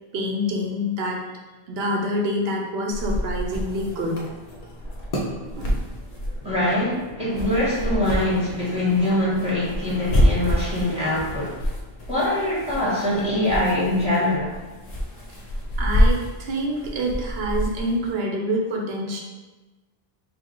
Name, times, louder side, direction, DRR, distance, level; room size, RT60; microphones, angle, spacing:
voice 1, 0.1-1.2 1.7-4.2 5.6-5.8 15.8-19.2, equal, 70° right, 0 dB, 1.0 m, -26 dB
sound 1, 2.9-18.1, equal, 45° left, 0.7 m, -27 dB
voice 2, 6.4-11.6 12.1-14.5, left 1 dB, 5° right, -8 dB, 1.4 m, -23 dB
4.6 x 2.4 x 3.8 m, 1.2 s
omnidirectional pair, 1.1 m